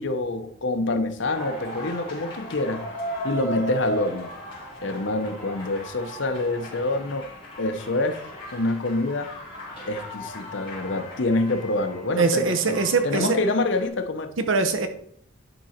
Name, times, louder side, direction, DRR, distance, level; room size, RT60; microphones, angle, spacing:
voice 1, 0.0-2.8 3.2-4.3 4.8-7.3 7.6-8.2 8.5-9.3 9.9-14.3, left 2 dB, 65° left, 7 dB, 0.8 m, -26 dB
sound 1, 1.3-13.9, equal, 25° left, 2.6 m, -37 dB
voice 2, 12.2-13.4 14.5-14.9, right 4 dB, 75° right, 7 dB, 0.8 m, -22 dB
10.5 x 3.8 x 4.3 m, 0.63 s
head